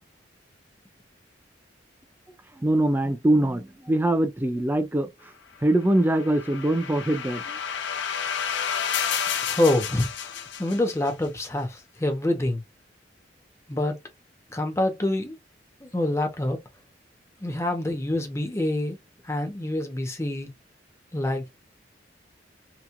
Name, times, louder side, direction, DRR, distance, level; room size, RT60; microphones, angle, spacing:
voice 1, 2.5-5.3 5.6-7.6, right 1 dB, 10° right, 0.4 m, -23 dB
sound 1, 5.8-11.1, left 7 dB, 65° left, 0.5 m, -30 dB
voice 2, 9.4-12.6 13.7-14.0 14.5-15.4 15.8-16.6 17.4-19.0 19.2-20.5 21.1-21.5, left 1 dB, 15° left, 0.7 m, -26 dB
2.9 x 2.4 x 2.2 m
head